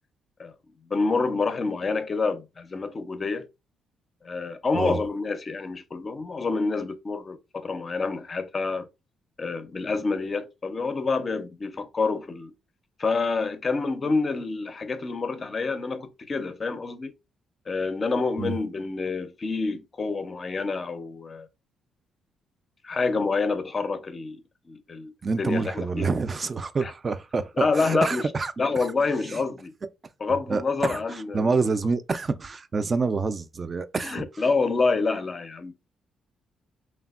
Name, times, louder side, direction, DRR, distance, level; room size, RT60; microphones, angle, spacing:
voice 1, 0.9-3.5 4.2-8.9 9.4-12.5 13.0-17.1 17.7-21.5 22.8-24.4 24.7-25.1 25.4-26.1 26.8-26.9 27.6-28.3 28.6-29.7 30.2-31.5 34.0-35.7, left 4 dB, 35° left, 0.4 m, -27 dB
voice 2, 25.2-28.5 29.3-29.4 30.5-34.4, right 4 dB, 35° right, 0.3 m, -27 dB
3.2 x 2.1 x 2.3 m
cardioid pair, 90°, 0 cm